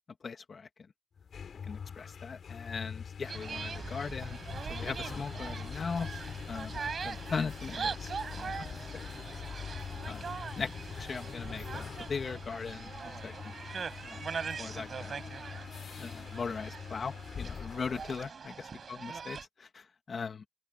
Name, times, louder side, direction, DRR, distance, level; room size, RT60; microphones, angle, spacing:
voice 1, 0.2-0.7 1.7-4.4 4.7-6.1 6.5-8.7 8.9-9.2 10.0-10.7 11.0-13.6 14.0-14.2 14.6-15.2 16.0-20.4, left 5 dB, 55° left, 2.4 m, -39 dB
sound 1, 1.2-18.3, left 7 dB, 75° left, 6.5 m, -43 dB
sound 2, 3.2-19.5, right 6 dB, 60° right, 5.5 m, -42 dB
open air
wide cardioid pair, 130°, 0 cm